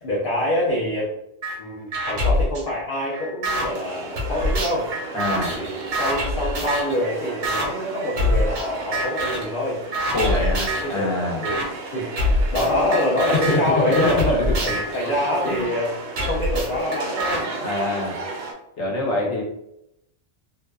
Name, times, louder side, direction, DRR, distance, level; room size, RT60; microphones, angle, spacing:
voice 1, 0.0-1.1 1.6-4.9 5.6-9.8 10.3-14.2 14.6-16.0 16.2-17.5 17.7-17.9, left 1 dB, 55° left, -6 dB, 0.7 m, -26 dB
sound 1, 1.4-1.6 1.9-3.7 4.2-7.0 7.4-7.7 8.2-8.7 8.9-9.5 9.9-10.9 11.4-11.7 12.2-15.6 16.2-17.4, left 1 dB, 85° right, 1.0 m, -25 dB
sound 2, 3.5-18.5, right 3 dB, 70° right, 0.8 m, -34 dB
voice 2, 5.1-5.6 10.1-11.4 13.3-14.5 15.4-15.6 17.6-18.2 18.8-19.4, left 2 dB, 80° left, -2 dB, 1.1 m, -24 dB
2.6 x 2.3 x 2.2 m, 0.80 s
omnidirectional pair, 1.2 m